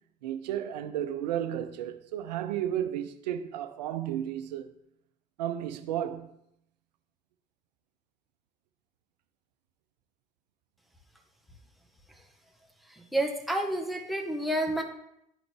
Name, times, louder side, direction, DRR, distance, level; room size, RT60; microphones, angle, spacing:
voice 1, 0.2-4.7 5.4-6.3, right 11 dB, 85° right, 0.6 m, -33 dB
voice 2, 13.1-14.8, right 1 dB, ahead, 1.3 m, -29 dB
10.5 x 3.9 x 3.4 m
hypercardioid pair, 60°, 21 cm